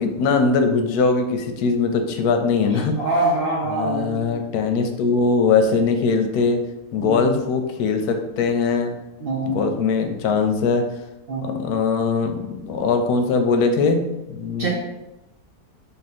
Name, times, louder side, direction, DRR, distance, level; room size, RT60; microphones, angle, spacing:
voice 1, 0.0-2.9 3.7-6.6 6.9-9.0 9.5-10.8 11.4-14.0 14.3-14.7, left 4 dB, 85° left, 5 dB, 1.1 m, -21 dB
voice 2, 2.7-4.3 7.0-7.4 9.2-9.7 11.3-11.6 14.6-14.7, right 2 dB, 55° right, -3 dB, 0.6 m, -25 dB
3.7 x 2.6 x 4.1 m, 0.97 s
omnidirectional pair, 1.6 m